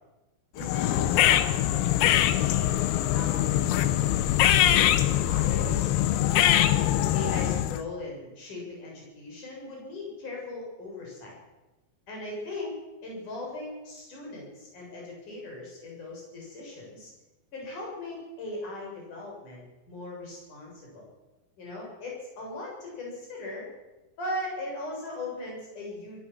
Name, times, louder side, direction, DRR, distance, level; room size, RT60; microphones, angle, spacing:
voice 1, 0.5-4.0 4.4-5.9 6.4-6.7 7.1-11.4 12.1-17.1 17.5-19.6 19.9-21.1 21.6-23.7 24.2-26.2, left 2 dB, 45° left, -2 dB, 8.7 m, -39 dB
sound 1, 0.6-7.8, left 12 dB, 75° left, 2.7 m, -23 dB
22.5 x 15.5 x 7.6 m, 1.0 s
omnidirectional pair, 5.1 m